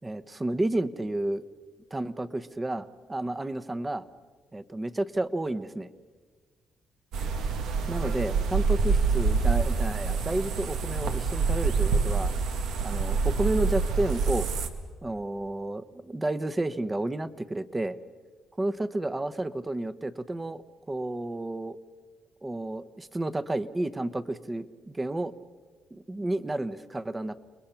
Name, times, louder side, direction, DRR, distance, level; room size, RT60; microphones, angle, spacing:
voice 1, 0.0-1.5 1.9-4.0 4.5-5.9 7.9-12.3 12.8-14.5 15.0-18.0 18.6-21.8 22.4-25.3 25.9-27.4, right 2 dB, 20° right, 12 dB, 1.0 m, -31 dB
sound 1, 7.1-14.7, right 4 dB, 85° right, 1.6 m, -26 dB
29.0 x 21.0 x 5.8 m, 1.5 s
cardioid pair, 90°, 0 cm